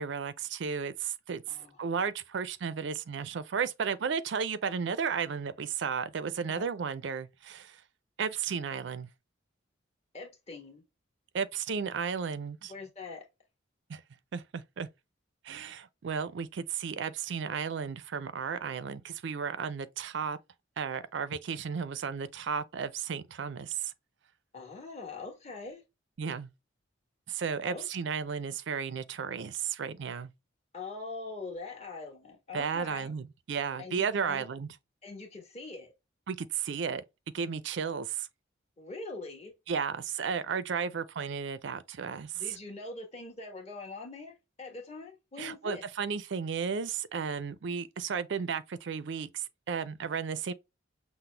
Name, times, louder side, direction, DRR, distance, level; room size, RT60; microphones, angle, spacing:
voice 1, 0.0-7.8 8.2-9.1 11.3-12.7 13.9-14.0 14.3-14.9 15.4-20.4 20.8-23.9 26.2-26.5 27.3-30.3 32.5-34.8 36.3-37.0 37.3-38.3 39.7-42.4 45.4-50.5, right 6 dB, 65° right, 0.4 m, -34 dB
voice 2, 1.5-1.8 6.5-6.7 10.1-10.8 12.7-13.2 24.5-25.8 27.6-27.8 30.7-33.2 33.8-34.4 35.0-35.9 38.8-39.5 42.3-45.8, left 3 dB, 35° left, 1.4 m, -43 dB
5.9 x 2.0 x 3.2 m
head